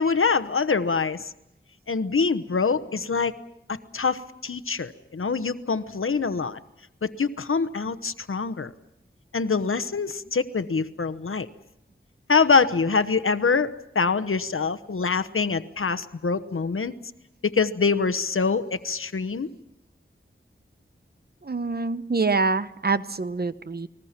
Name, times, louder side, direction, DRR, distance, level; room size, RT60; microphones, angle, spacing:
voice 1, 0.0-1.3 1.9-3.4 3.7-6.6 7.0-8.7 9.3-11.5 12.3-16.9 17.4-19.5, left 5 dB, 85° left, 12 dB, 1.0 m, -24 dB
voice 2, 21.4-23.9, right 4 dB, 50° right, 13 dB, 0.9 m, -25 dB
29.5 x 21.0 x 5.9 m, 0.81 s
wide cardioid pair, 60°, 21 cm